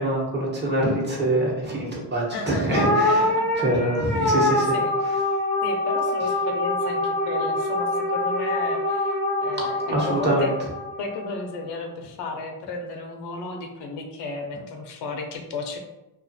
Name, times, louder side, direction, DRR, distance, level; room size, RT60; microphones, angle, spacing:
voice 1, 0.0-3.3 3.6-4.8 9.8-10.5, right 1 dB, 25° right, -4 dB, 1.0 m, -24 dB
voice 2, 2.3-3.2 4.1-4.5 4.7-4.9 5.6-10.5 11.0-15.8, left 3 dB, 80° left, 3 dB, 0.6 m, -34 dB
sound 1, 2.7-11.3, left 2 dB, 5° left, 0.5 m, -25 dB
2.4 x 2.4 x 2.6 m, 0.99 s
cardioid pair, 90°, 41 cm